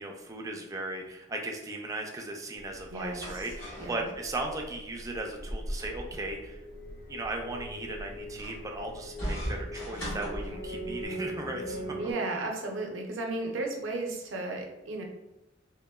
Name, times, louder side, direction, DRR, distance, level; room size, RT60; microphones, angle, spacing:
voice 1, 0.0-6.6 7.1-12.0, right 2 dB, 20° right, 2 dB, 0.3 m, -37 dB
sound 1, 2.6-11.1, equal, 75° left, 1.4 m, -40 dB
voice 2, 2.9-3.3 3.8-4.1 12.0-15.0, right 2 dB, 90° right, 1 dB, 0.5 m, -34 dB
sound 2, 5.6-12.1, right 1 dB, 55° left, 0.7 m, -41 dB
2.9 x 2.1 x 2.2 m, 0.94 s
head